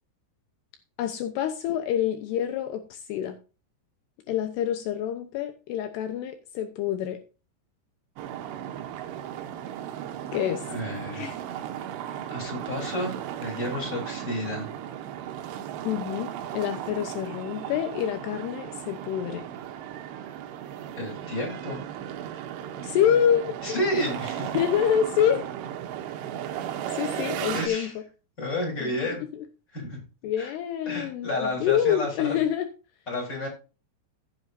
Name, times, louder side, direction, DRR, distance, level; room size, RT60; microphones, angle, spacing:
voice 1, 1.0-3.4 4.3-7.2 10.3-10.6 11.1-11.4 15.8-16.3 16.5-19.4 22.8-23.8 24.5-25.5 26.9-28.0 28.8-29.5 30.2-32.7, left 9 dB, 90° left, 7 dB, 2.3 m, -27 dB
sound 1, 8.2-27.7, right 10 dB, 90° right, 2.4 m, -36 dB
voice 2, 10.7-11.3 12.3-14.7 21.0-21.8 23.6-24.6 27.5-27.9 28.4-29.2 29.7-30.0 30.4-30.5 30.9-32.4 33.1-33.5, left 1 dB, 20° left, -1 dB, 3.4 m, -31 dB
15.5 x 7.7 x 2.6 m, 0.33 s
omnidirectional pair, 6.0 m